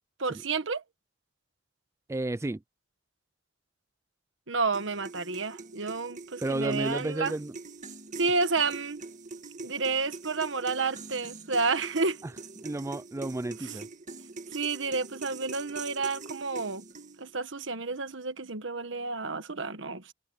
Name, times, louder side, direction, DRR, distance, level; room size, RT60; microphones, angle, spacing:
voice 1, 0.2-0.8 4.5-7.3 8.1-9.0 9.6-12.2 14.5-16.8 17.2-20.1, right 4 dB, 75° right, 1.4 m, -30 dB
voice 2, 2.1-2.6 6.4-7.6 12.6-13.9, right 2 dB, 15° right, 0.3 m, -32 dB
sound 1, 4.7-17.4, right 3 dB, 40° right, 1.8 m, -44 dB
head